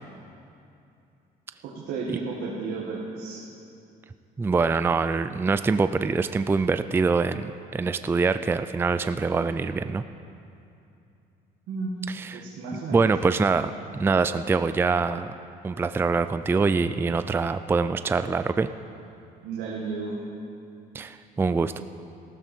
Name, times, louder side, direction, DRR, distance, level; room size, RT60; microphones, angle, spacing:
voice 1, 1.6-3.4 11.7-11.9 12.3-13.1 19.4-20.2, right 4 dB, 80° right, -4 dB, 1.9 m, -33 dB
voice 2, 4.4-10.0 12.1-12.4 12.9-15.3 15.6-18.7 20.9-21.7, right 4 dB, 15° right, 11 dB, 0.3 m, -24 dB
14.5 x 13.0 x 4.5 m, 2.7 s
cardioid pair, 110°, 17 cm